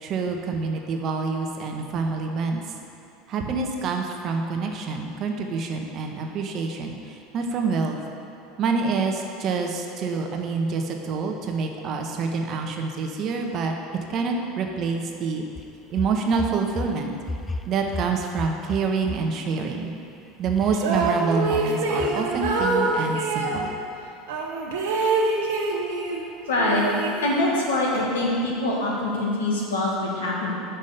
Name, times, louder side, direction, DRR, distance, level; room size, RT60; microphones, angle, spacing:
voice 1, 0.0-2.6 3.3-8.0 8.6-13.7 14.1-15.4 15.9-17.1 17.7-19.9 20.4-23.7, right 4 dB, 50° right, 2 dB, 0.9 m, -27 dB
sound 1, 15.6-16.9 17.2-19.2 20.5-21.2 21.5-21.7 22.0-22.2 22.4-22.6, left 2 dB, 20° left, 0.4 m, -33 dB
sound 2, 20.7-23.6 24.3-26.3 26.6-27.7, right 3 dB, 75° right, 1.0 m, -25 dB
voice 2, 26.5-26.9 27.2-30.5, left 2 dB, 85° left, -3 dB, 1.5 m, -24 dB
5.7 x 5.2 x 6.7 m, 2.7 s
hypercardioid pair, 85°, 0 cm